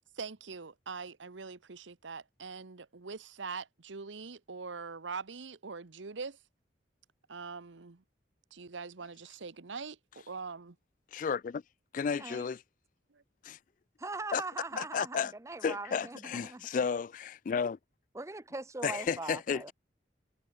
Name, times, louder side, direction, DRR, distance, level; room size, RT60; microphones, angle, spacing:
voice 1, 0.2-6.4 7.3-8.0 8.5-10.8 13.1-13.2, right 4 dB, 85° right, 1.0 m, -43 dB
voice 2, 11.1-11.6 11.9-12.6 13.4-13.6 14.3-14.4 14.7-15.3 15.6-17.8 18.8-19.7, left 6 dB, 45° left, 0.3 m, -33 dB
voice 3, 12.1-12.5 14.0-16.7 18.1-19.7, right 3 dB, 15° right, 0.6 m, -41 dB
head